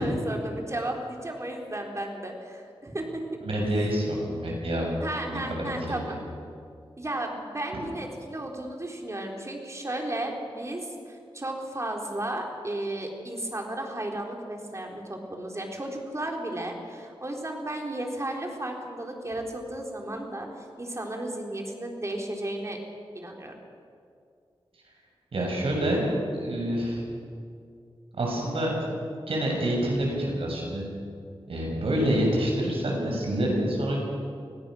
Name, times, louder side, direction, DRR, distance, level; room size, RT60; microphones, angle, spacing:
voice 1, 0.0-3.2 5.0-6.2 7.0-20.5 20.8-22.8 23.1-23.6, right 1 dB, 30° right, 1 dB, 4.0 m, -34 dB
voice 2, 3.4-4.9 5.3-6.0 25.3-26.0 26.3-27.0 28.2-28.7 29.3-30.8 31.5-34.0, right 1 dB, 75° right, -1 dB, 6.7 m, -27 dB
25.0 x 17.0 x 6.4 m, 2.3 s
cardioid pair, 65°, 10 cm